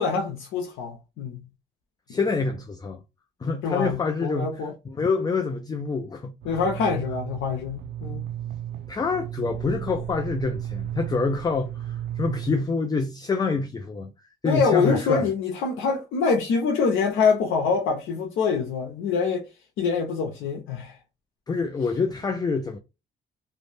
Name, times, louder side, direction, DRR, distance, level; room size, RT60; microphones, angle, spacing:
voice 1, 0.0-1.4 3.6-4.7 6.4-8.2 14.4-19.5 19.8-21.0, left 5 dB, 85° left, 0.6 m, -25 dB
voice 2, 2.1-3.0 3.4-6.6 8.9-14.1 14.4-15.3 21.5-22.8, left 4 dB, 20° left, 0.4 m, -27 dB
sound 1, 6.4-12.6, right 11 dB, 65° right, 0.4 m, -34 dB
2.5 x 2.1 x 3.2 m
cardioid pair, 90°, 20 cm